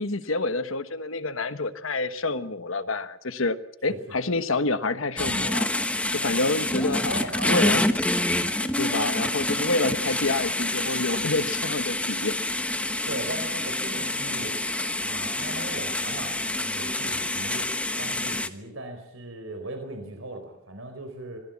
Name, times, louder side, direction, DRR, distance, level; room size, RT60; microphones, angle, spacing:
voice 1, 0.0-3.6 3.8-5.7 6.1-7.8 8.6-12.4, left 3 dB, 70° left, 11 dB, 1.3 m, -28 dB
sound 1, 5.2-18.5, left 1 dB, 5° left, 1.2 m, -27 dB
voice 2, 7.1-7.8 13.1-14.6 15.0-17.7 18.0-21.4, right 2 dB, 70° right, 5 dB, 4.5 m, -38 dB
26.5 x 19.5 x 7.4 m, 0.74 s
head